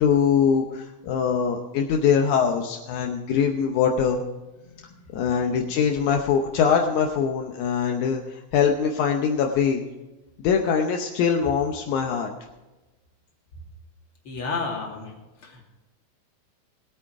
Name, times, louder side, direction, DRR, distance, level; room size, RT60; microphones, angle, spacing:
voice 1, 0.0-4.2 5.1-9.8 10.4-12.3, left 7 dB, 80° left, 3 dB, 2.3 m, -22 dB
voice 2, 14.2-15.1 15.4-15.6, left 4 dB, 45° left, -1 dB, 3.2 m, -31 dB
18.5 x 8.7 x 4.7 m, 1.1 s
omnidirectional pair, 3.5 m